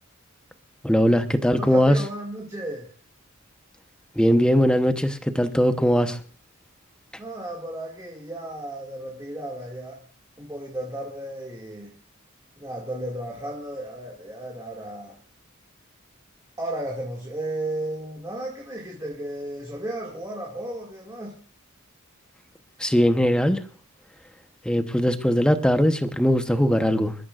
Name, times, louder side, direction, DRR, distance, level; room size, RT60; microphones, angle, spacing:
voice 1, 0.8-2.0 4.1-6.2 22.8-23.6 24.6-27.2, equal, 5° left, 0.9 m, -20 dB
voice 2, 1.4-2.9 7.2-10.0 10.4-11.9 12.6-15.2 16.6-21.4, right 1 dB, 15° right, 2.2 m, -34 dB
27.5 x 13.0 x 2.5 m
head